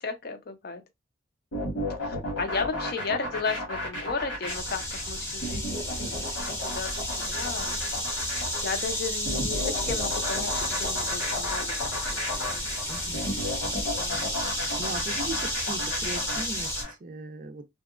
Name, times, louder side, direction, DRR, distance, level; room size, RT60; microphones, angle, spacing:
voice 1, 0.0-0.8 2.0-4.8 5.1-6.3 6.6-7.8 8.6-11.7 12.1-12.6 14.0-14.2, left 4 dB, 50° left, 0.5 m, -34 dB
sound 1, 1.5-16.9, left 1 dB, 85° left, 1.5 m, -33 dB
sound 2, 4.5-16.8, left 1 dB, 10° left, 0.7 m, -32 dB
voice 2, 12.9-13.2 13.7-14.0 14.8-17.7, right 2 dB, 40° right, 0.4 m, -38 dB
2.8 x 2.2 x 2.4 m
head